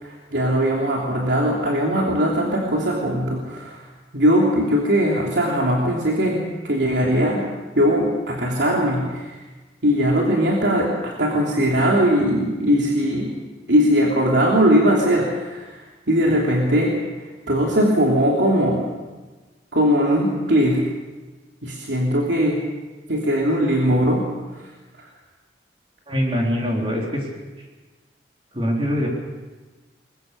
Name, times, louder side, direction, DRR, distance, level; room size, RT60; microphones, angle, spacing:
voice 1, 0.0-3.9 4.1-7.4 7.7-9.4 9.8-13.3 13.7-17.0 17.5-18.8 19.7-20.8 21.6-22.6 23.1-24.2 24.6-24.7 25.0-25.1, equal, 85° right, -2 dB, 3.1 m, -20 dB
voice 2, 26.1-27.2 28.5-29.1, equal, 30° right, -1 dB, 3.8 m, -23 dB
22.0 x 22.0 x 6.8 m, 1.3 s
head